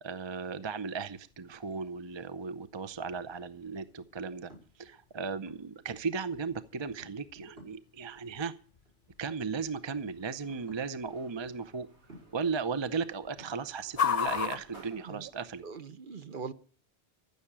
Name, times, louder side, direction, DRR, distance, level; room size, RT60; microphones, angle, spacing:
voice 1, 0.0-4.5 4.8-8.5 9.2-11.9 12.3-15.6, right 5 dB, 30° right, 0.6 m, -36 dB
sound 1, 1.0-15.8, left 8 dB, 40° left, 0.7 m, -41 dB
sound 2, 2.4-13.5, right 1 dB, 70° right, 5.9 m, -60 dB
sound 3, 9.8-15.2, right 3 dB, 85° right, 5.8 m, -58 dB
voice 2, 15.6-16.5, right 5 dB, 50° right, 1.1 m, -41 dB
14.5 x 6.9 x 8.7 m
omnidirectional pair, 1.1 m